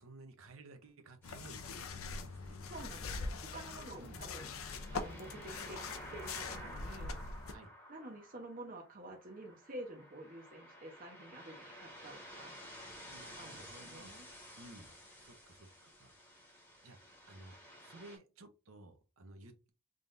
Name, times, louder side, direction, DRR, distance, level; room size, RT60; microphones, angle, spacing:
voice 1, 0.0-2.6 4.0-4.2 7.5-7.7 13.0-14.2 14.5-16.2 16.8-19.7, right 2 dB, 80° right, 0.9 m, -55 dB
sound 1, 1.2-7.5, left 4 dB, 85° left, 0.6 m, -43 dB
sound 2, 1.2-18.2, equal, 10° left, 2.1 m, -54 dB
voice 2, 2.7-4.5 4.9-5.8 6.1-7.2 7.9-12.6 13.3-14.3, right 1 dB, 40° right, 0.9 m, -49 dB
3.7 x 3.5 x 2.6 m
head